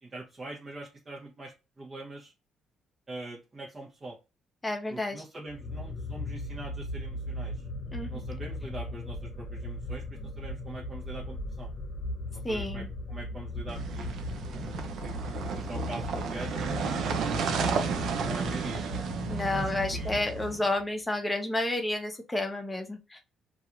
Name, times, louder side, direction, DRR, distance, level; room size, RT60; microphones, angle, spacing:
voice 1, 0.0-2.3 3.1-4.2 4.9-7.6 8.1-11.7 12.3-14.1 14.5-17.9 18.2-18.9 19.5-20.2, right 2 dB, 30° right, -4 dB, 0.8 m, -43 dB
voice 2, 4.6-5.2 7.9-8.2 12.4-12.9 19.3-23.2, left 2 dB, 15° left, 4 dB, 0.8 m, -31 dB
sound 1, 5.5-20.8, left 2 dB, 50° left, 0.7 m, -37 dB
sound 2, 13.7-20.7, right 6 dB, 70° right, 0.5 m, -33 dB
2.4 x 2.3 x 2.8 m, 0.28 s
cardioid pair, 80°, 0 cm